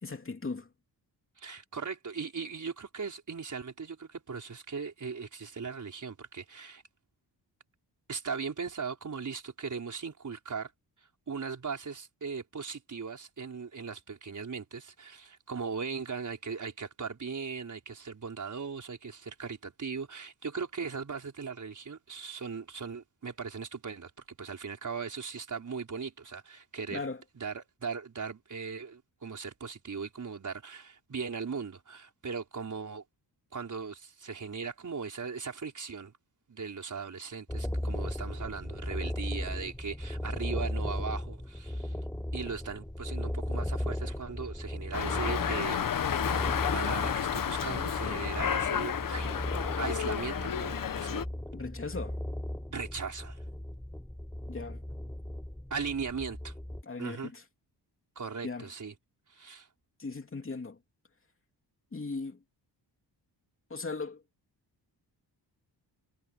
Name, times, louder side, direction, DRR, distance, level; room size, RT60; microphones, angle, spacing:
voice 1, 0.0-0.7 26.9-27.2 51.5-52.2 54.5-54.8 56.8-57.4 58.4-58.7 60.0-60.8 61.9-62.4 63.7-64.2, left 3 dB, 30° left, 3.0 m, -38 dB
voice 2, 1.4-6.8 8.1-10.7 11.3-24.1 24.4-27.0 27.4-33.0 33.5-36.1 36.5-42.0 42.3-45.9 46.3-51.2 52.7-53.4 55.7-56.5 57.0-57.3 58.2-58.9 59.3-59.7, right 5 dB, 45° right, 5.2 m, -38 dB
sound 1, 37.5-56.8, left 1 dB, 5° left, 6.6 m, -37 dB
Dog, 44.9-51.3, left 8 dB, 50° left, 1.1 m, -31 dB
cardioid pair, 105°, 42 cm